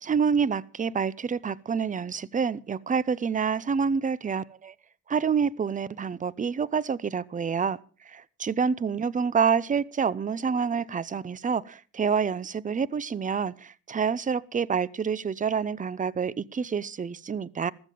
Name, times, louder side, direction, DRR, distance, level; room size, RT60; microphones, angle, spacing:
voice 1, 0.0-4.7 5.1-7.8 8.1-17.7, right 6 dB, 25° right, 0.7 m, -27 dB
15.0 x 13.5 x 5.0 m
cardioid pair, 90°, 30 cm